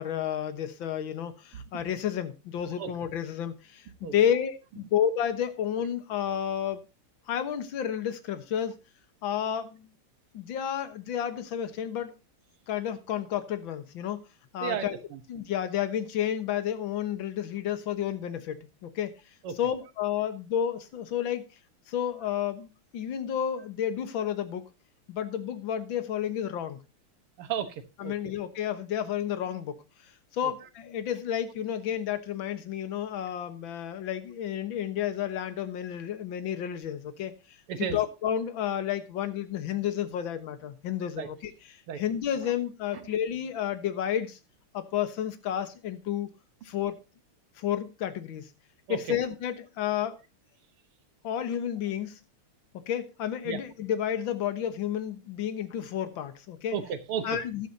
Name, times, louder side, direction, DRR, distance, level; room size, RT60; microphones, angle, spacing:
voice 1, 0.0-6.8 7.3-8.8 9.2-9.9 10.3-12.1 12.7-14.2 14.5-15.0 15.3-19.1 19.6-21.4 21.9-24.7 25.1-26.8 28.0-37.3 37.8-44.4 44.7-46.3 46.6-47.0 47.6-48.5 48.9-50.2 51.2-52.2 52.7-56.8 57.2-57.7, left 9 dB, 65° left, 1.9 m, -31 dB
voice 2, 14.6-15.2 19.4-19.5 27.4-28.1 37.7-38.0 41.2-41.3 41.9-42.0 48.9-49.0 53.5-53.6 56.7-57.3, right 8 dB, 80° right, 2.1 m, -33 dB
14.0 x 11.5 x 2.8 m
omnidirectional pair, 2.4 m